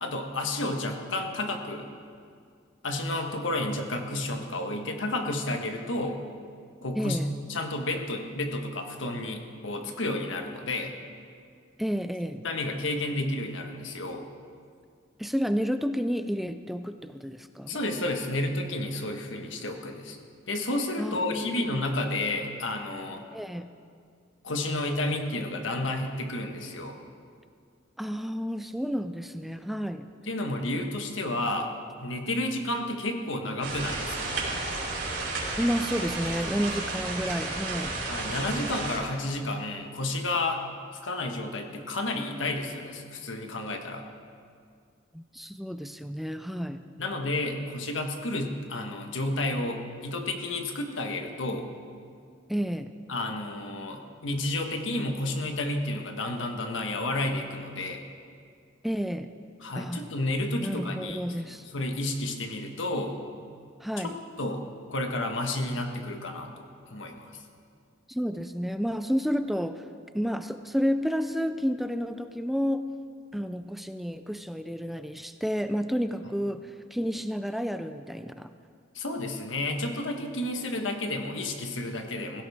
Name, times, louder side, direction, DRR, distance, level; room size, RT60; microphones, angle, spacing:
voice 1, 0.0-1.9 2.8-6.2 6.8-7.2 7.5-10.9 12.4-14.2 17.7-20.2 20.5-23.2 24.4-27.0 30.3-31.7 32.0-34.4 38.1-40.6 40.9-44.0 47.0-51.7 53.1-58.0 59.6-61.2 61.7-63.2 64.0-64.6 64.9-67.4 78.9-82.4, left 2 dB, 90° left, 4 dB, 1.4 m, -31 dB
voice 2, 7.0-7.3 11.8-12.4 15.2-17.8 21.0-21.8 23.3-23.7 28.0-30.1 35.6-38.0 45.1-46.8 52.5-52.9 58.8-59.3 59.8-60.1 60.6-61.6 63.8-64.2 68.1-69.8 70.1-72.9 73.3-78.5, equal, ahead, 9 dB, 0.3 m, -30 dB
sound 1, 33.6-39.0, right 3 dB, 70° right, 4.4 m, -32 dB
16.5 x 16.0 x 3.6 m, 2.2 s
head